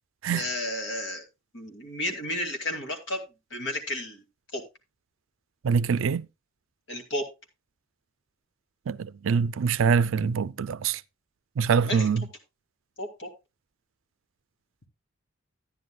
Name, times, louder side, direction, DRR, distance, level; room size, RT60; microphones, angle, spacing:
voice 1, 0.3-1.2 1.5-3.2 3.5-4.2 4.5-4.6 6.9-7.3 10.2-10.3 11.8-12.1 13.0-13.3, left 1 dB, 60° left, 2.4 m, -32 dB
voice 2, 5.6-6.3 8.9-11.0 11.6-12.2, right 6 dB, 80° right, 0.4 m, -24 dB
12.5 x 10.0 x 2.3 m
head